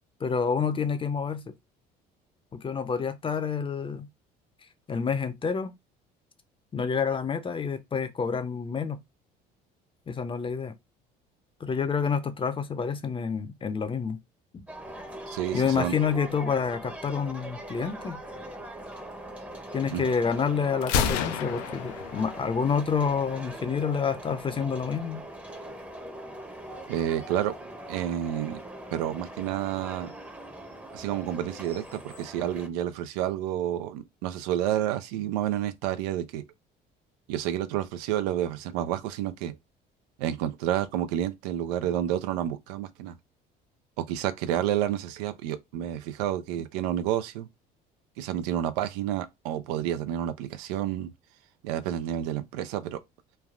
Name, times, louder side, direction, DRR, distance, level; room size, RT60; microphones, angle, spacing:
voice 1, 0.2-1.5 2.5-4.1 4.9-5.7 6.7-9.0 10.1-10.7 11.6-14.2 14.5-14.6 15.5-18.2 19.7-25.2, left 6 dB, 25° left, 0.6 m, -28 dB
sound 1, 14.7-32.7, right 1 dB, 5° right, 0.7 m, -41 dB
voice 2, 15.3-15.9 19.9-20.0 26.9-27.5 27.9-28.6 28.9-30.1 30.9-36.4 37.3-39.6 40.2-43.2 44.0-47.5 48.2-51.1 51.6-53.0, right 11 dB, 90° right, 0.4 m, -30 dB
Gunshot gunfire, 20.8-22.8, left 7 dB, 85° left, 0.5 m, -30 dB
3.2 x 2.2 x 2.4 m
supercardioid pair, 80°, 20 cm